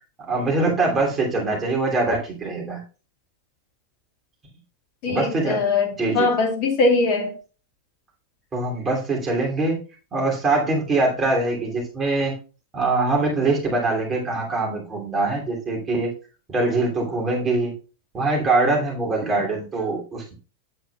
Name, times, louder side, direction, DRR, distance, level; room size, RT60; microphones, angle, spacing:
voice 1, 0.3-2.8 5.1-5.6 6.0-6.3 8.5-9.8 10.1-12.4 12.7-16.1 16.5-17.7 18.1-20.3, right 3 dB, 20° right, 3.0 m, -23 dB
voice 2, 5.0-7.4, left 3 dB, 45° left, 1.9 m, -21 dB
9.0 x 7.8 x 2.4 m
figure-of-eight pair, 90°, 0 cm